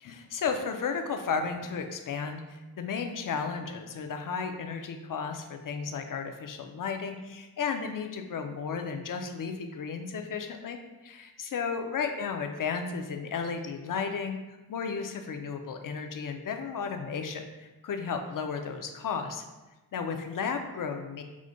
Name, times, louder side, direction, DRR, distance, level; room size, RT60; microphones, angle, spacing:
voice 1, 0.0-14.4 14.7-19.4 19.9-21.2, left 5 dB, 60° left, 6 dB, 0.5 m, -34 dB
4.9 x 2.1 x 3.7 m, 1.1 s
wide cardioid pair, 110°, 37 cm